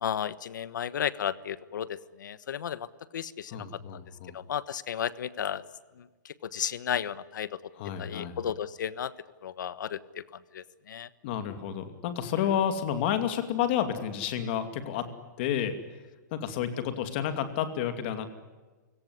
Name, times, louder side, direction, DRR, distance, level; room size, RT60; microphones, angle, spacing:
voice 1, 0.0-2.9 3.1-3.6 4.3-5.6 6.5-7.5 8.0-9.1 9.4-10.0 10.5-11.1, left 9 dB, 80° left, 17 dB, 1.3 m, -33 dB
voice 2, 3.5-4.4 7.7-8.4 11.2-15.1 15.4-16.0 16.3-18.3, left 9 dB, 35° left, 9 dB, 2.5 m, -30 dB
29.5 x 17.5 x 9.9 m, 1.3 s
supercardioid pair, 175°, 10 cm